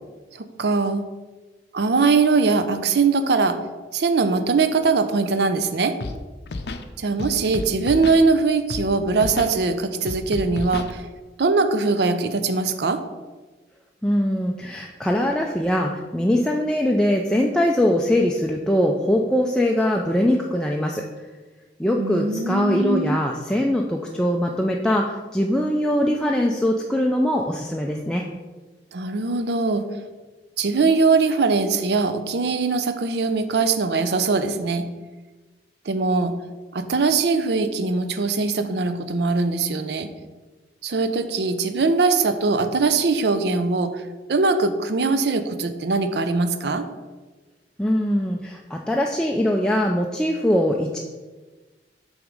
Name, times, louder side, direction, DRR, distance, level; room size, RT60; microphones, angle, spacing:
voice 1, 0.3-1.0 1.7-3.6 3.9-6.0 7.0-11.0 11.4-13.0 22.0-23.2 28.9-29.9 30.6-34.9 35.9-36.4 36.7-40.1 40.8-44.0 44.3-46.9, right 4 dB, 65° right, 9 dB, 0.5 m, -21 dB
Scratching (performance technique), 6.0-6.2 6.4-6.8 7.2-8.2 8.7-8.9 9.1-9.5 10.1-10.9, left 3 dB, 65° left, 0.5 m, -31 dB
voice 2, 14.0-21.0 21.8-28.3 47.8-51.0, left 1 dB, 5° left, 0 dB, 0.3 m, -22 dB
6.2 x 3.6 x 5.2 m, 1.3 s
head